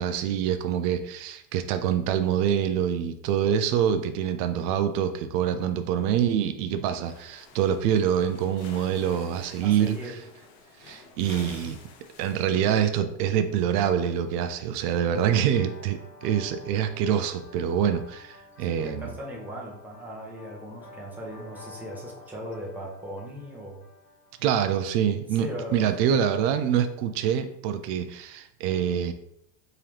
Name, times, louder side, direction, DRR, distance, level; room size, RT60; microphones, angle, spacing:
voice 1, 0.0-10.1 10.8-11.8 12.2-19.1 24.4-29.1, right 9 dB, 70° right, 9 dB, 0.5 m, -25 dB
sound 1, 7.0-12.8, left 4 dB, 70° left, 0.9 m, -49 dB
voice 2, 9.6-10.2 18.6-23.8 25.3-26.1, equal, 5° right, -3 dB, 0.8 m, -38 dB
sound 2, 15.4-25.0, left 2 dB, 25° left, 0.9 m, -50 dB
3.8 x 2.9 x 3.2 m, 0.78 s
supercardioid pair, 120°, 50 cm